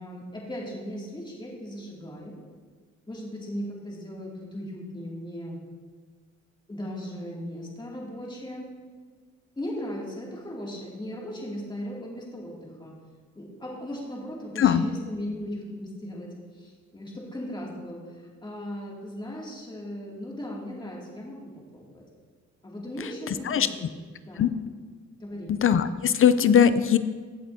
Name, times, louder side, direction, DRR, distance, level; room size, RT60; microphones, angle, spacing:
voice 1, 0.0-2.4 3.1-5.6 6.7-8.7 9.6-13.0 13.3-22.0 22.6-24.0 24.2-24.5 25.2-25.5, equal, 15° left, -3 dB, 2.5 m, -37 dB
voice 2, 25.5-27.0, left 8 dB, 45° left, 13 dB, 0.5 m, -20 dB
15.5 x 7.9 x 2.8 m, 1.5 s
cardioid pair, 90°, 30 cm